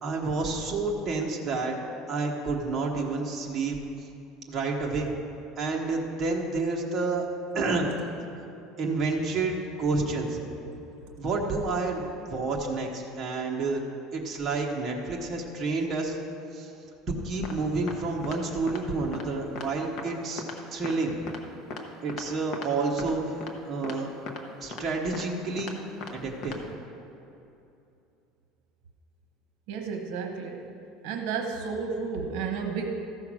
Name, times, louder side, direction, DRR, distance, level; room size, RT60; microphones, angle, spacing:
voice 1, 0.0-1.8 2.1-4.1 4.5-5.1 5.6-7.2 7.5-7.9 8.8-10.4 11.2-12.0 12.3-13.8 14.1-16.2 16.5-16.7 17.1-20.4 20.7-21.1 22.0-24.1 24.6-25.8 26.1-26.6, right 3 dB, 25° right, -1 dB, 1.1 m, -29 dB
sound 1, 17.4-17.5 17.9-18.0 18.2-18.4 18.7-18.8 19.1-19.3 19.6-19.7 20.0-20.1 20.4-20.6 20.8-21.0 21.3-21.4 21.7-21.8 22.1-22.2 22.5-22.7 23.0-23.1 23.4-23.5 23.8-24.0 24.3-24.4 24.7-24.8 25.1-25.2 25.6-25.7 26.0-26.1 26.4-26.6, left 4 dB, 35° left, 1.0 m, -37 dB
voice 2, 29.7-30.7 31.0-33.0, right 5 dB, 65° right, 4 dB, 1.0 m, -32 dB
14.0 x 5.8 x 6.1 m, 2.8 s
cardioid pair, 170°, 0 cm